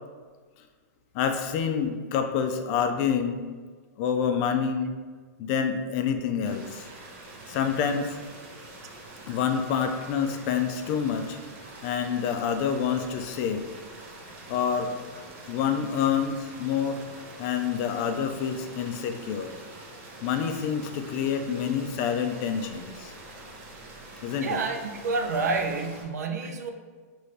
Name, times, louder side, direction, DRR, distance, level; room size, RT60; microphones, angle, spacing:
voice 1, 1.1-3.4 4.0-4.9 5.4-6.9 7.5-8.2 9.3-11.4 11.8-13.7 14.5-15.0 15.5-17.0 17.4-19.5 20.2-23.1 24.2-24.6, left 7 dB, 40° left, 6 dB, 0.4 m, -27 dB
sound 1, 6.4-26.0, right 2 dB, 45° right, 0.9 m, -45 dB
voice 2, 24.4-26.7, right 3 dB, 85° right, 5 dB, 0.6 m, -29 dB
5.5 x 2.6 x 3.2 m, 1.5 s
hypercardioid pair, 150°, 9 cm